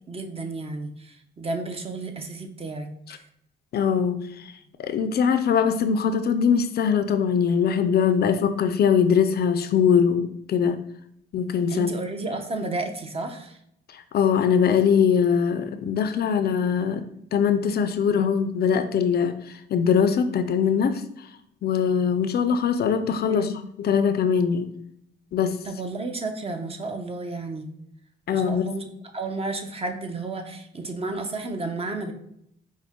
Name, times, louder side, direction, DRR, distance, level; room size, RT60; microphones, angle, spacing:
voice 1, 0.1-3.2 11.7-13.6 23.2-23.5 25.6-27.7 28.3-28.9 29.1-32.1, right 3 dB, 30° right, 5 dB, 0.6 m, -32 dB
voice 2, 3.7-4.2 4.8-10.8 11.3-11.9 14.1-17.0 17.3-19.4 19.7-21.0 21.6-23.5 23.8-24.7 25.3-25.6 28.3-28.6, left 7 dB, 55° left, 9 dB, 0.4 m, -22 dB
4.9 x 2.1 x 3.6 m, 0.73 s
cardioid pair, 90°, 20 cm